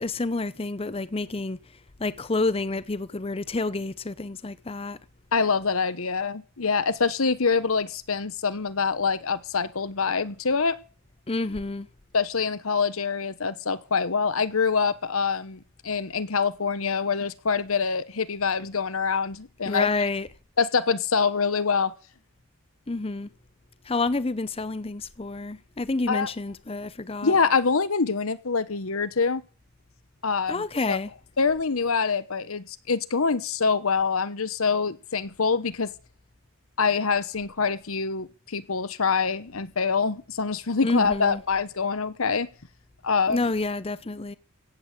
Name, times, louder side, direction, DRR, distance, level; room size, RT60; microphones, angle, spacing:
voice 1, 0.0-1.6 2.0-5.0 11.3-11.9 19.7-20.3 22.9-23.3 23.9-27.3 30.5-31.1 40.8-41.4 43.3-44.4, left 3 dB, 25° left, 0.7 m, -29 dB
voice 2, 5.3-10.8 12.1-19.9 20.6-21.9 26.1-26.3 27.2-29.4 30.2-30.6 30.9-31.0 31.4-35.9 36.8-42.5 43.0-43.4, left 5 dB, 75° left, 1.1 m, -25 dB
16.5 x 8.5 x 7.6 m
head